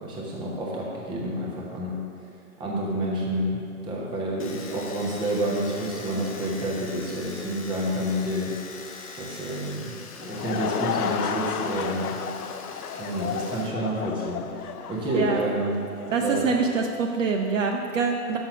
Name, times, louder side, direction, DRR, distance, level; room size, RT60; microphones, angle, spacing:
voice 1, 0.0-2.0 2.6-8.8 9.2-12.2 13.0-15.8 16.2-16.5, right 1 dB, 10° right, -3 dB, 0.9 m, -29 dB
Domestic sounds home sounds, 4.4-13.7 14.0-14.8, left 4 dB, 25° left, 0.4 m, -43 dB
Laughter / Crowd, 10.0-16.3, left 7 dB, 75° left, 0.7 m, -32 dB
voice 2, 16.1-18.4, right 5 dB, 55° right, 2 dB, 0.7 m, -25 dB
6.4 x 6.0 x 6.0 m, 2.5 s
hypercardioid pair, 135°, 45 cm